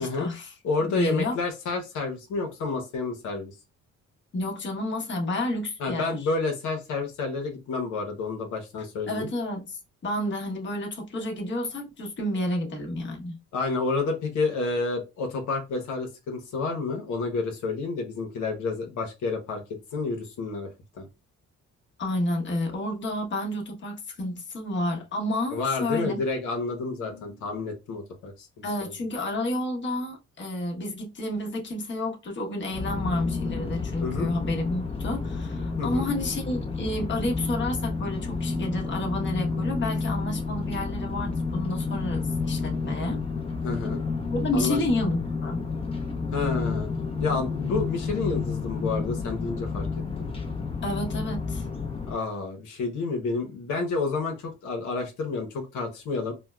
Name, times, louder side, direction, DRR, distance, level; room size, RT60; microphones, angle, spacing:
voice 1, 0.0-0.5 0.8-1.4 4.3-6.2 9.1-13.4 22.0-26.2 28.6-43.2 44.3-45.7 50.8-51.7, left 1 dB, 40° left, 1.1 m, -30 dB
voice 2, 0.6-3.5 5.8-9.3 13.5-20.7 21.0-21.1 25.5-28.9 34.0-34.3 35.8-36.1 43.6-44.0 44.5-44.8 46.3-46.9 47.2-49.9 50.2-50.3 52.1-56.3, left 4 dB, 80° left, 0.9 m, -30 dB
sound 1, 32.7-52.1, left 4 dB, 20° left, 0.7 m, -30 dB
4.3 x 2.1 x 2.3 m
cardioid pair, 90°, 30 cm